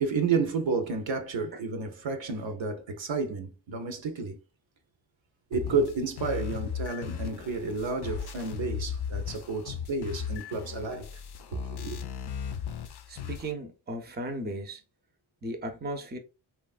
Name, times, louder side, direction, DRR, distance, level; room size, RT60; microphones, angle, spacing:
voice 1, 0.0-4.4 5.5-11.1 11.5-12.0, right 4 dB, 70° right, 0.7 m, -31 dB
sound 1, 5.5-13.5, left 7 dB, 55° left, 0.5 m, -36 dB
voice 2, 13.1-14.8 15.4-16.2, right 1 dB, 20° right, 0.6 m, -36 dB
3.0 x 2.3 x 2.4 m
cardioid pair, 60°, 48 cm